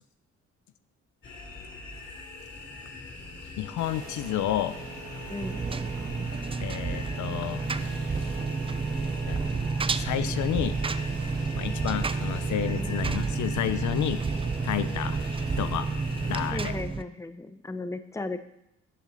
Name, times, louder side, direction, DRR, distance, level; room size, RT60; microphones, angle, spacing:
sound 1, 1.2-16.5, left 3 dB, 40° left, 3.0 m, -42 dB
voice 1, 3.6-4.8 6.6-7.7 9.3-9.4 10.0-10.8 11.5-14.2 14.6-15.2 15.6-15.9 16.3-16.7, left 11 dB, 70° left, 12 dB, 0.7 m, -30 dB
sound 2, 3.8-16.8, right 5 dB, 85° right, 1.8 m, -43 dB
Engine, 5.4-17.0, right 4 dB, 20° right, 0.4 m, -30 dB
voice 2, 16.5-18.4, left 2 dB, 10° left, 10 dB, 0.7 m, -35 dB
14.0 x 7.4 x 4.0 m, 0.80 s
cardioid pair, 90°, 30 cm